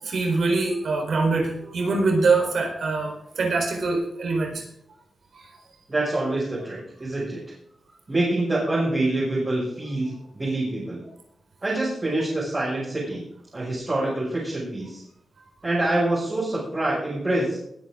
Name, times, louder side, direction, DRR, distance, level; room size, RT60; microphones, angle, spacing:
voice 1, 0.0-4.6 5.3-5.5, right 3 dB, 65° right, 2 dB, 4.3 m, -24 dB
voice 2, 5.9-7.4 8.1-11.0 11.6-13.2 13.5-15.0 15.6-17.6, right 2 dB, 25° right, -7 dB, 6.4 m, -26 dB
21.5 x 9.4 x 3.9 m, 0.76 s
wide cardioid pair, 155°, 0 cm